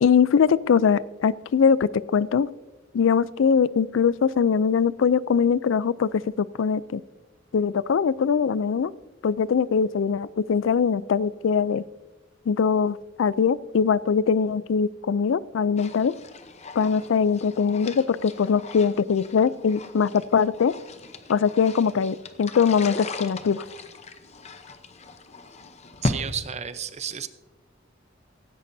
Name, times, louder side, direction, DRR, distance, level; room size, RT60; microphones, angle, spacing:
voice 1, 0.0-2.5 2.9-7.0 7.5-8.9 9.2-11.8 12.5-16.1 16.8-20.7 21.3-23.6, left 6 dB, 85° left, 19 dB, 0.4 m, -22 dB
sound 1, 15.8-26.2, left 2 dB, 35° left, 0.8 m, -37 dB
voice 2, 26.0-27.3, right 7 dB, 35° right, 12 dB, 0.7 m, -32 dB
16.5 x 15.5 x 2.7 m, 1.2 s
head